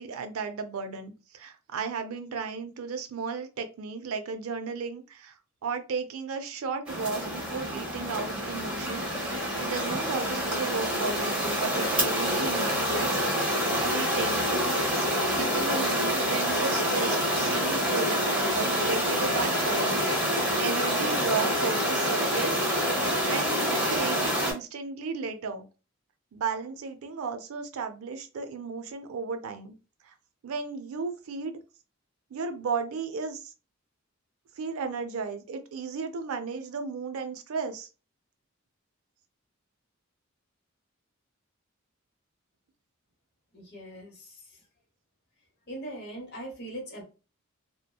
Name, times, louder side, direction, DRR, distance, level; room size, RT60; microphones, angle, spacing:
voice 1, 0.0-5.3 5.6-13.4 13.9-14.4 14.9-15.1 15.3-22.6 23.3-25.6 26.3-29.7 30.1-30.2 30.4-31.6 32.3-33.5 34.6-37.9, right 5 dB, 90° right, 7 dB, 0.4 m, -34 dB
sound 1, 6.9-24.5, equal, 5° right, 0.9 m, -27 dB
voice 2, 43.5-44.6 45.7-47.0, right 1 dB, 50° left, 1 dB, 1.0 m, -41 dB
2.7 x 2.1 x 2.2 m, 0.33 s
head